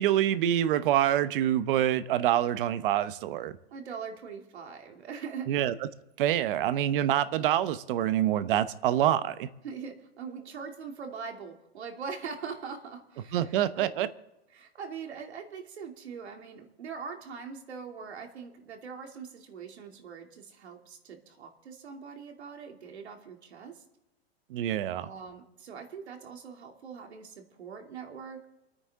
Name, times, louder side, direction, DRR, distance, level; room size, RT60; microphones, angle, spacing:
voice 1, 0.0-3.5 5.5-5.7 6.2-9.5 13.3-14.1 24.5-25.1, right 11 dB, 55° right, 1.0 m, -26 dB
voice 2, 3.7-5.5 9.6-13.9 14.5-23.8 25.0-28.5, right 6 dB, 90° right, 2.8 m, -42 dB
28.5 x 9.7 x 3.7 m
hypercardioid pair, 145°, 32 cm